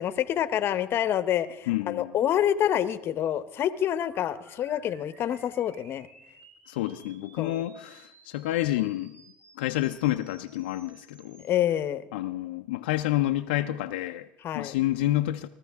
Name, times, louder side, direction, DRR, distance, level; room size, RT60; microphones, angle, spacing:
voice 1, 0.0-6.1 7.4-7.6 11.4-12.1 14.4-14.7, left 10 dB, 45° left, 0.8 m, -27 dB
voice 2, 1.7-2.1 6.7-9.2 9.6-11.5 12.1-14.3 14.5-15.5, left 15 dB, 85° left, 0.5 m, -29 dB
sound 1, 4.1-11.5, right 3 dB, 55° right, 3.5 m, -56 dB
20.5 x 13.0 x 3.5 m
supercardioid pair, 100°, 5 cm